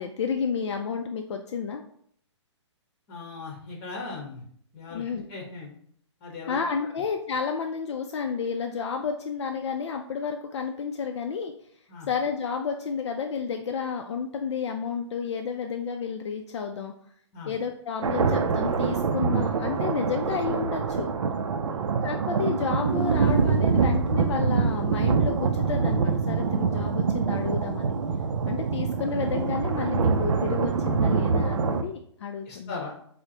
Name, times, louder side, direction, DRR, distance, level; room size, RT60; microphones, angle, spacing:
voice 1, 0.0-1.8 4.9-5.3 6.5-11.5 12.1-16.9 17.5-21.1 22.0-27.9 28.5-32.8, left 6 dB, 65° left, 4 dB, 0.4 m, -31 dB
voice 2, 3.1-4.4 4.7-5.7 6.2-6.6 6.8-6.9 11.9-12.1 17.3-17.5 21.6-21.8 28.4-28.5 32.4-32.9, left 4 dB, 30° left, -1 dB, 1.1 m, -39 dB
sound 1, 18.0-31.8, right 5 dB, 85° right, 0.4 m, -25 dB
4.4 x 2.1 x 2.8 m, 0.64 s
hypercardioid pair, 145°, 15 cm